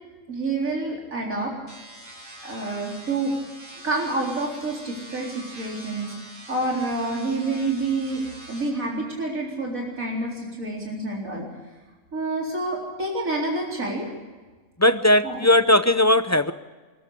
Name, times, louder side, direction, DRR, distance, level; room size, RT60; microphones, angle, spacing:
voice 1, 0.3-1.5 2.4-3.3 3.7-11.5 12.1-14.1 15.2-15.4, right 2 dB, 80° right, -2 dB, 4.3 m, -28 dB
sound 1, 1.7-8.7, right 1 dB, 35° right, 5.8 m, -44 dB
voice 2, 14.8-16.5, left 1 dB, 20° left, 11 dB, 0.5 m, -18 dB
24.0 x 13.5 x 8.3 m, 1.3 s
omnidirectional pair, 1.4 m